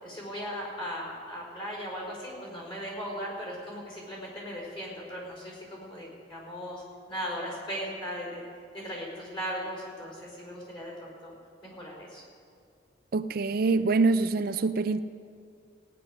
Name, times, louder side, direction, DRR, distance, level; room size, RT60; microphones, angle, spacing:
voice 1, 0.0-8.4 8.7-11.3 11.6-12.2, equal, 30° left, 4.7 m, -38 dB
voice 2, 13.1-15.0, right 3 dB, 55° right, 0.4 m, -25 dB
17.5 x 9.9 x 6.4 m
head